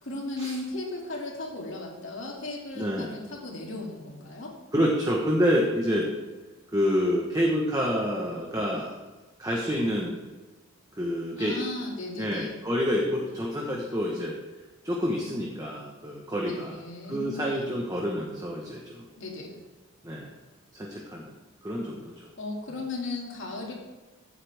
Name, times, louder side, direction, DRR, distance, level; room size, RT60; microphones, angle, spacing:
voice 1, 0.0-4.6 11.4-12.6 16.4-17.7 19.2-19.6 22.4-23.7, left 2 dB, 60° left, -1 dB, 2.5 m, -36 dB
voice 2, 2.8-3.1 4.7-6.1 6.7-8.9 9.4-10.1 10.9-11.6 12.2-14.4 14.8-16.8 17.1-19.0 20.0-20.3 20.7-21.3 21.6-22.1, equal, 15° right, -1 dB, 1.2 m, -28 dB
15.0 x 8.0 x 3.5 m, 1.2 s
head